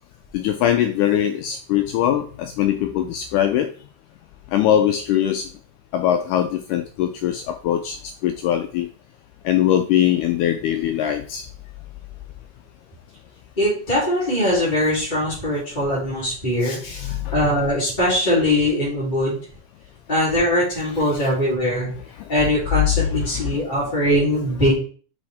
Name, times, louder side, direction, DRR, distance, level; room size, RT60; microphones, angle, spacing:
voice 1, 0.3-3.7 4.5-5.5 5.9-8.0 8.2-8.9 9.5-11.5 16.6-17.3 22.2-22.3 23.4-23.6, left 11 dB, 80° left, 7 dB, 1.8 m, -21 dB
voice 2, 13.6-17.0 17.3-19.4 20.1-21.9 22.3-24.7, left 1 dB, 15° left, -9 dB, 3.1 m, -21 dB
6.1 x 5.3 x 3.5 m, 0.42 s
omnidirectional pair, 4.0 m